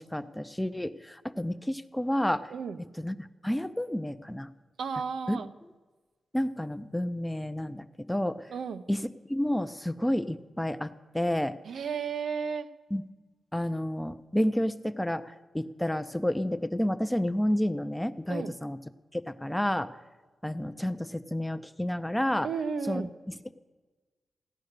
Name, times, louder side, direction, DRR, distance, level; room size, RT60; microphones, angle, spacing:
voice 1, 0.0-2.5 3.0-4.5 5.3-5.4 6.3-8.5 8.9-11.6 12.9-13.0 13.5-18.8 19.1-19.9 20.4-22.5 22.9-23.5, left 1 dB, 5° left, 12 dB, 0.5 m, -30 dB
voice 2, 4.8-5.5 8.5-8.8 11.7-12.7 18.3-18.5 22.4-23.1, right 6 dB, 85° right, 10 dB, 0.7 m, -33 dB
16.0 x 10.5 x 6.6 m, 1.3 s
wide cardioid pair, 110°, 0 cm